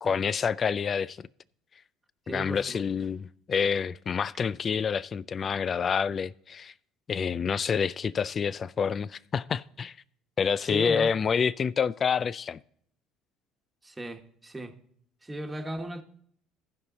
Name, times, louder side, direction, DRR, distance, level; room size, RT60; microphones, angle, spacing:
voice 1, 0.0-1.2 2.3-6.7 7.1-10.0 10.4-12.6, left 6 dB, 40° left, 0.4 m, -28 dB
voice 2, 2.3-2.8 10.6-11.1 13.8-14.7 15.2-16.0, right 1 dB, 15° right, 1.4 m, -36 dB
15.5 x 5.5 x 3.9 m
supercardioid pair, 80°, 0 cm